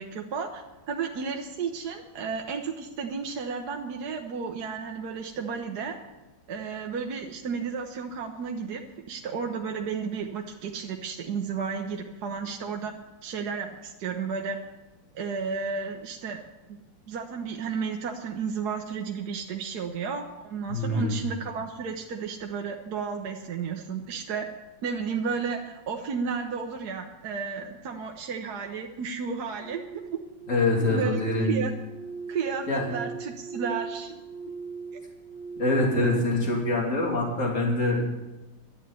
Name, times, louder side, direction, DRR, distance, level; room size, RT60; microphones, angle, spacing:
voice 1, 0.0-6.0 6.5-8.8 9.1-12.9 13.2-14.6 15.1-16.4 16.7-16.8 17.1-24.5 24.8-30.2 30.8-31.7 32.3-34.2, right 5 dB, 55° right, 3 dB, 1.3 m, -33 dB
voice 2, 20.7-21.1 30.5-31.5 32.7-32.8 35.6-38.1, left 2 dB, 35° left, -1 dB, 3.3 m, -24 dB
sound 1, 29.6-36.2, right 4 dB, ahead, 0.9 m, -40 dB
11.5 x 8.9 x 9.6 m, 1.1 s
omnidirectional pair, 2.2 m